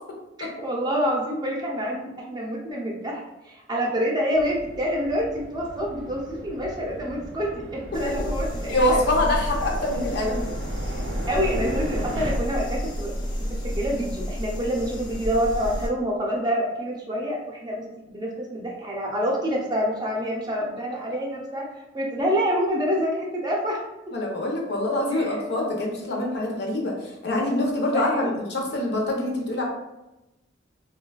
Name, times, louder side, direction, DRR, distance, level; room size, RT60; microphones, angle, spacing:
voice 1, 0.4-9.0 11.3-21.7 21.9-23.8 25.1-25.3 27.9-28.3, equal, 25° right, -2 dB, 0.5 m, -27 dB
sound 1, 4.3-12.3, right 1 dB, 70° right, 0.5 m, -37 dB
sound 2, 7.9-15.9, equal, 25° left, 0.4 m, -30 dB
voice 2, 8.7-10.4 24.1-29.6, left 1 dB, 65° left, -1 dB, 0.6 m, -25 dB
3.1 x 2.2 x 2.2 m, 0.97 s
head